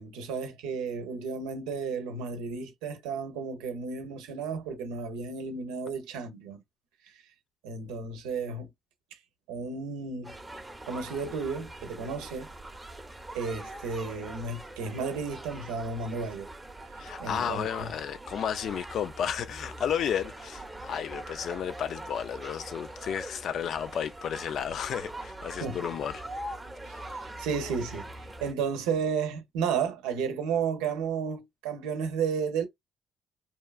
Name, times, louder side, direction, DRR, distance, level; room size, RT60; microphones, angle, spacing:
voice 1, 0.0-6.6 7.0-7.2 7.6-8.7 9.1-9.2 9.5-10.3 10.9-12.5 13.3-16.5 16.9-17.9 25.6-25.8 26.9-32.7, right 5 dB, 85° right, 0.6 m, -33 dB
sound 1, 10.2-28.5, right 1 dB, 15° right, 0.7 m, -43 dB
voice 2, 17.0-26.2, left 8 dB, 65° left, 0.3 m, -32 dB
2.7 x 2.3 x 2.3 m
supercardioid pair, 70°, 0 cm